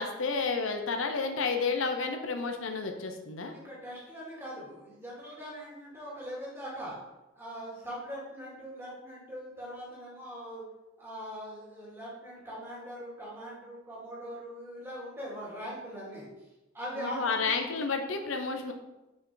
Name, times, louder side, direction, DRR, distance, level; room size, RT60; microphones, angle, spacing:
voice 1, 0.0-3.5 17.0-18.7, left 4 dB, 80° left, 5 dB, 0.7 m, -31 dB
voice 2, 3.5-7.0 7.3-10.6 11.0-16.3 16.7-17.5 18.7-18.8, equal, 10° right, -7 dB, 2.3 m, -41 dB
6.0 x 4.8 x 3.8 m, 1.0 s
head